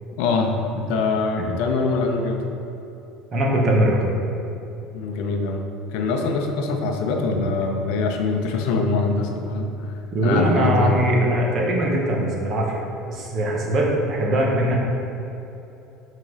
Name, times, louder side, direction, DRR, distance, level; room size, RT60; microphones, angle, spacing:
voice 1, 0.2-2.4 4.9-5.6 5.9-10.9, left 4 dB, 65° left, 3 dB, 0.6 m, -23 dB
voice 2, 3.3-4.0 10.1-12.8 13.1-14.8, right 1 dB, 30° right, -2 dB, 1.0 m, -21 dB
6.3 x 3.7 x 5.4 m, 3.0 s
cardioid pair, 170°, 0 cm